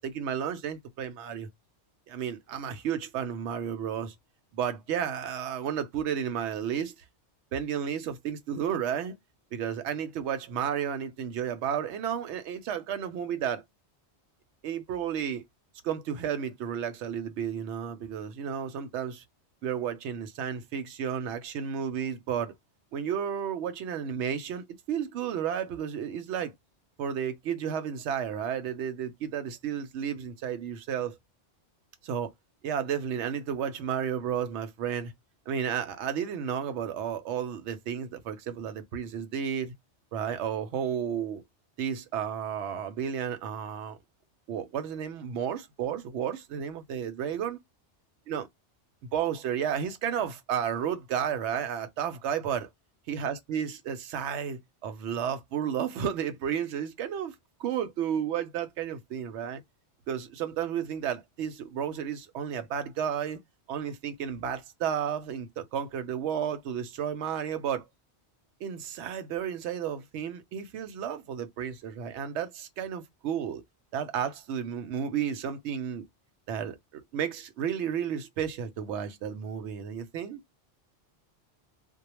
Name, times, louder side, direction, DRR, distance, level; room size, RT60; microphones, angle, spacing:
voice 1, 0.0-1.5 2.1-4.1 4.5-6.9 7.5-9.1 9.5-13.6 14.6-15.4 15.8-19.2 19.6-22.5 22.9-26.5 27.0-31.2 32.0-32.3 32.6-35.1 35.5-39.7 40.1-41.4 41.8-44.0 44.5-47.6 48.3-48.4 49.1-52.7 53.1-57.3 57.6-59.6 60.1-63.4 63.7-67.9 68.6-73.6 73.9-76.0 76.5-80.4, right 8 dB, 80° right, 0.9 m, -32 dB
2.2 x 2.1 x 2.9 m
omnidirectional pair, 1.2 m